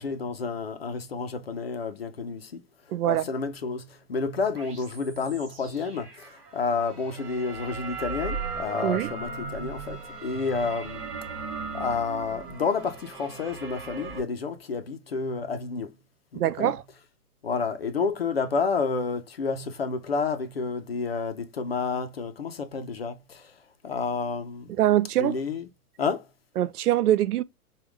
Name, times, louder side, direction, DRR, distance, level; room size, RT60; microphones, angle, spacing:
voice 1, 0.0-2.6 3.0-11.0 11.7-15.9 16.3-16.7 17.4-23.5 23.8-24.7 25.2-25.7 26.0-26.3, left 4 dB, 45° left, 0.5 m, -30 dB
voice 2, 2.9-3.2 8.8-9.1 16.4-16.8 24.8-25.3 26.6-27.4, right 13 dB, 80° right, 0.6 m, -23 dB
sound 1, 4.5-14.2, right 4 dB, 35° right, 2.4 m, -38 dB
4.6 x 2.3 x 3.4 m
hypercardioid pair, 175°, 45 cm